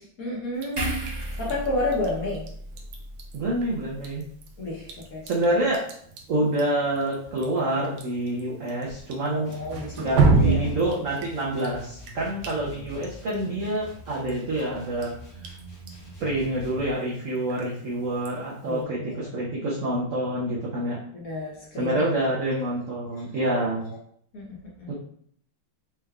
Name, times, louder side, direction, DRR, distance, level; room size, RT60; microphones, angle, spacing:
voice 1, 0.2-0.8 1.3-2.5 4.6-5.3 9.3-10.7 18.6-19.3 21.1-22.1 24.3-24.9, left 2 dB, 55° left, -4 dB, 1.2 m, -31 dB
Drip, 0.6-18.8, right 4 dB, 90° right, 1.5 m, -32 dB
sound 1, 0.8-4.1 4.5-4.7, right 1 dB, 25° right, 0.9 m, -34 dB
voice 2, 3.3-4.2 5.2-5.8 6.3-9.5 10.0-15.1 16.2-21.0 21.8-23.9 24.9-25.0, right 1 dB, 70° right, -4 dB, 0.7 m, -27 dB
sound 2, 9.4-16.9, left 1 dB, 85° left, 0.4 m, -45 dB
4.5 x 3.2 x 2.3 m, 0.63 s
omnidirectional pair, 2.2 m